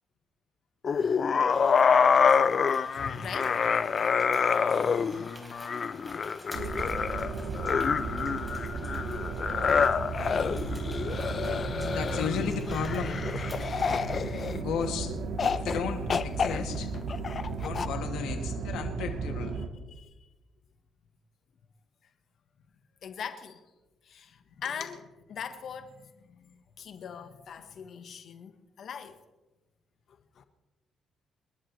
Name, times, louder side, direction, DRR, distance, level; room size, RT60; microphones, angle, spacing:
sound 1, 0.8-14.9 15.4-15.8 16.1-17.9, left 6 dB, 45° left, 0.6 m, -27 dB
sound 2, 1.5-14.1, equal, ahead, 4.1 m, -50 dB
voice 1, 3.0-3.6 9.7-9.8 14.4-14.7 19.6-20.1 23.0-23.6 24.0-25.0 25.3-29.2 30.1-30.4, left 7 dB, 65° left, 1.2 m, -41 dB
sound 3, 6.5-19.7, right 4 dB, 75° right, 1.7 m, -35 dB
voice 2, 11.9-13.2 14.6-15.1 15.5-16.9 17.6-19.6 24.6-24.7, left 7 dB, 85° left, 2.3 m, -34 dB
29.5 x 11.5 x 3.2 m
cardioid pair, 90°, 0 cm